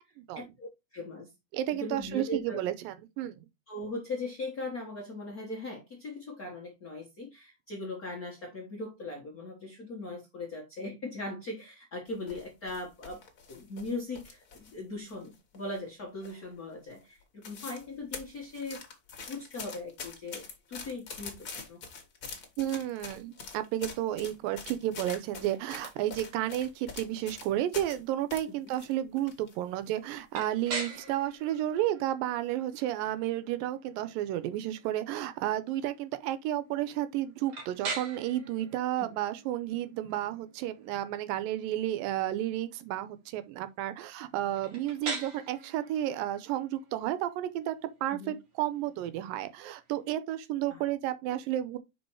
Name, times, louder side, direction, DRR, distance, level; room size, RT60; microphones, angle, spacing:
voice 1, 0.3-1.3 1.7-2.6 3.7-13.2 13.5-18.8 19.3-21.8 28.5-28.6 39.0-39.1 48.1-48.4 50.7-50.8, left 2 dB, 90° left, 0.8 m, -39 dB
voice 2, 1.5-3.3 22.6-47.8 48.0-51.8, right 13 dB, 85° right, 2.4 m, -32 dB
sound 1, 12.1-14.8 15.1-15.9 16.2-16.6 16.9-17.0 17.2-17.9 18.1-28.0 28.3-29.5 29.9-30.0 30.6-31.0 31.4-31.6, left 5 dB, 50° left, 1.2 m, -44 dB
sound 2, 30.3-50.1, right 3 dB, 55° right, 1.3 m, -44 dB
5.4 x 4.8 x 4.5 m
omnidirectional pair, 4.0 m